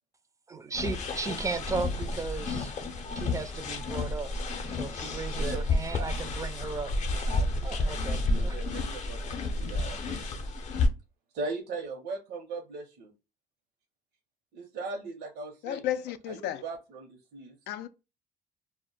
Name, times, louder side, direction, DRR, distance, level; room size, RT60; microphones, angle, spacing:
voice 1, 0.5-2.7 3.1-4.3 4.8-6.9 7.6-8.6, right 4 dB, 20° right, 0.4 m, -36 dB
sound 1, 0.7-10.9, left 2 dB, 45° left, 0.6 m, -31 dB
voice 2, 5.3-5.6 5.9-6.1 7.3-10.3 11.3-13.1 14.5-15.8 16.3-17.5, right 3 dB, 75° right, 0.6 m, -39 dB
voice 3, 15.6-16.6 17.7-17.9, left 11 dB, 90° left, 0.4 m, -33 dB
2.1 x 2.1 x 3.7 m
cardioid pair, 110°, 17 cm